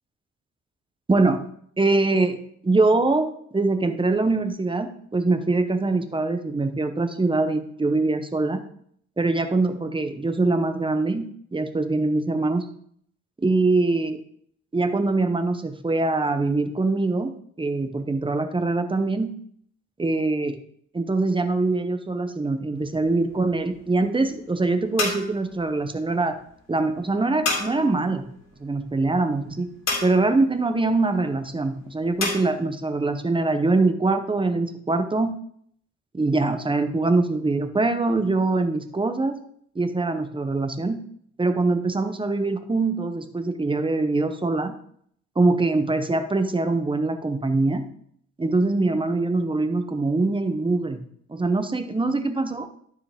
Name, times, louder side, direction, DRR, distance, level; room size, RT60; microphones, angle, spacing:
voice 1, 1.1-1.5 1.8-8.6 9.2-11.2 11.5-12.7 13.4-14.2 14.7-19.3 20.0-20.6 20.9-26.4 26.7-28.2 28.6-29.7 30.0-35.3 36.1-39.4 39.7-41.0 41.4-44.7 45.4-47.9 48.4-51.0 51.3-52.7, right 3 dB, 15° right, 9 dB, 0.9 m, -23 dB
sound 1, 22.7-32.4, left 3 dB, 60° left, 2.4 m, -33 dB
11.5 x 4.8 x 3.6 m, 0.65 s
cardioid pair, 90°, 30 cm